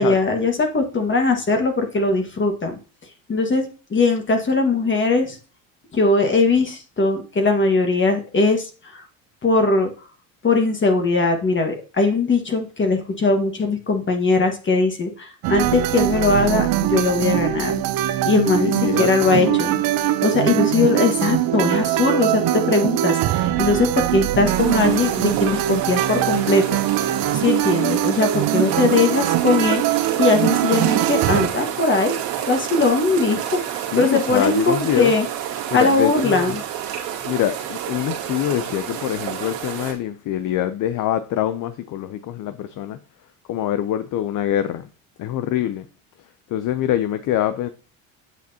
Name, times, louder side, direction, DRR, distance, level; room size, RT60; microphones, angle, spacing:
voice 1, 0.0-2.8 3.3-5.4 5.9-9.1 9.4-10.1 10.4-17.8 18.2-19.7 20.2-26.6 27.3-32.1 32.5-35.3 35.7-36.6, left 3 dB, 30° left, 1.7 m, -20 dB
sound 1, 15.4-31.5, right 13 dB, 60° right, 0.7 m, -22 dB
voice 2, 18.5-19.8 33.9-35.1 35.7-36.6 37.2-43.0 43.5-44.9 45.2-45.9 46.5-47.7, left 11 dB, 50° left, 0.7 m, -24 dB
sound 2, 24.5-39.9, right 10 dB, 80° right, 2.3 m, -29 dB
9.0 x 6.1 x 2.8 m
supercardioid pair, 80°, 40 cm